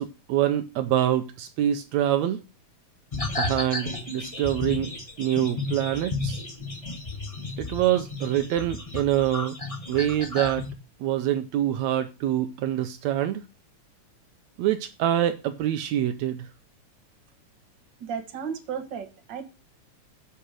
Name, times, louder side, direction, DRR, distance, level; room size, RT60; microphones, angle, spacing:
voice 1, 0.0-2.4 3.4-6.4 7.6-9.6 9.9-10.7 11.0-13.4 14.6-16.5, right 12 dB, 80° right, 8 dB, 1.9 m, -25 dB
sound 1, 3.1-10.7, left 3 dB, 30° left, 0.6 m, -33 dB
voice 2, 18.0-19.4, right 7 dB, 45° right, 5 dB, 1.9 m, -34 dB
8.3 x 5.7 x 7.6 m, 0.30 s
omnidirectional pair, 3.4 m